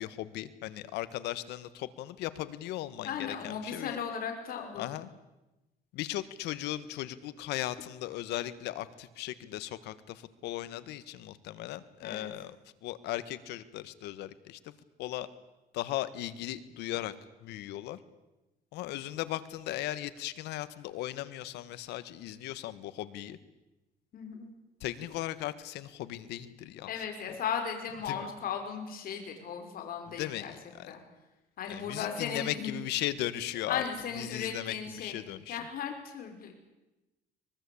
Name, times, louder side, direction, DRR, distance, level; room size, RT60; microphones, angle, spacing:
voice 1, 0.0-4.0 4.8-5.1 5.9-12.6 12.8-14.7 15.0-15.3 15.7-17.1 17.4-18.0 18.7-23.4 24.8-26.9 28.0-28.3 30.2-30.9 31.7-33.8 34.2-35.6, left 14 dB, 85° left, 14 dB, 1.6 m, -37 dB
voice 2, 3.0-4.9 12.0-12.3 24.1-24.5 26.9-30.5 30.9-31.0 31.6-32.7 33.7-35.1 35.5-36.5, left 7 dB, 60° left, 3 dB, 5.4 m, -36 dB
24.0 x 22.0 x 8.7 m, 1.0 s
cardioid pair, 110°, 17 cm